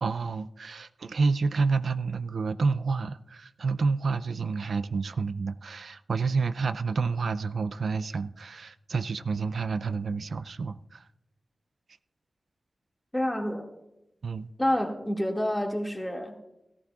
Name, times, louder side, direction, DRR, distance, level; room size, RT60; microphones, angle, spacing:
voice 1, 0.0-11.1 14.2-14.5, right 4 dB, 85° right, 12 dB, 0.4 m, -29 dB
voice 2, 13.1-13.7 14.6-16.4, left 1 dB, 10° left, 1 dB, 2.0 m, -28 dB
17.5 x 14.0 x 2.4 m, 0.88 s
wide cardioid pair, 105°, 0 cm